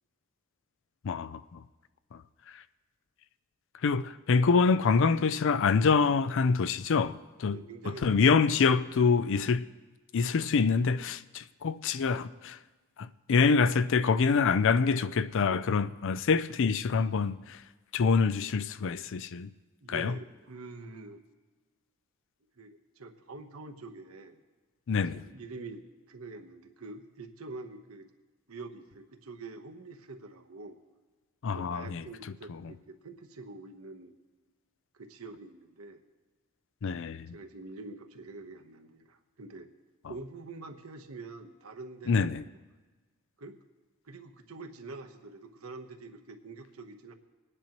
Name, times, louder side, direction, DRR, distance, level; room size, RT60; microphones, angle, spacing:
voice 1, 1.0-1.6 3.8-7.6 7.9-9.7 10.1-12.6 13.0-17.6 17.9-19.5 19.9-20.1 24.9-25.2 31.4-32.0 36.8-37.3 42.1-42.4, left 5 dB, 60° left, 0.4 m, -26 dB
voice 2, 7.5-8.2 19.8-21.2 22.6-24.4 25.1-28.1 28.5-30.8 31.5-34.1 34.9-36.0 37.3-39.7 40.1-42.4 43.4-43.6 44.0-47.1, right 3 dB, 80° right, 1.0 m, -45 dB
21.0 x 9.9 x 3.0 m
head